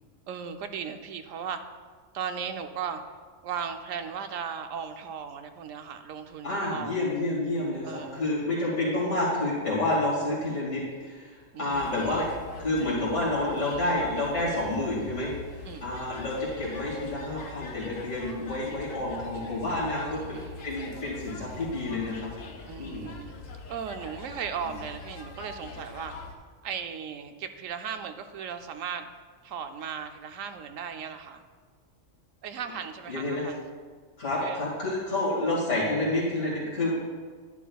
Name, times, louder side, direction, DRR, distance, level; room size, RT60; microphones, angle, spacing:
voice 1, 0.3-1.6 2.1-3.0 3.4-7.0 7.8-8.3 11.5-12.2 15.6-15.9 20.0-20.7 22.7-23.3 23.7-26.1 26.6-29.1 29.4-31.4 32.4-33.7 34.4-34.6, right 7 dB, 85° right, 7 dB, 1.0 m, -37 dB
voice 2, 6.4-12.3 12.6-15.3 15.8-22.1 22.8-23.1 33.1-33.4 34.2-36.9, left 2 dB, 65° left, -7 dB, 2.5 m, -29 dB
sound 1, 11.7-26.3, left 4 dB, 85° left, 1.3 m, -43 dB
11.0 x 9.8 x 2.3 m, 1.5 s
omnidirectional pair, 1.3 m